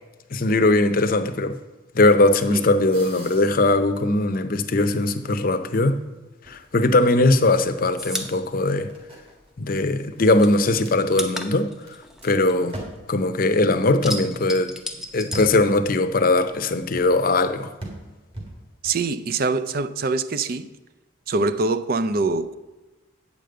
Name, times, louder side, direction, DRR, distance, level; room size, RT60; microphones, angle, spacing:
voice 1, 0.3-1.6 1.9-6.0 6.5-8.9 9.6-11.7 12.2-12.8 13.1-14.7 15.1-17.7, left 2 dB, 45° left, 0.6 m, -20 dB
sound 1, 2.9-4.7 5.0-5.7 6.5-11.9 12.2-12.3 12.6-13.2 15.3-16.0 17.0-17.3 17.8-19.0, right 1 dB, 30° right, 1.9 m, -41 dB
sound 2, 6.9-9.7 10.0-13.3 13.6-16.2 16.5-17.6, left 1 dB, 5° right, 0.6 m, -35 dB
voice 2, 18.8-20.7 21.3-22.5, right 3 dB, 45° right, 0.4 m, -24 dB
8.5 x 5.2 x 7.7 m
head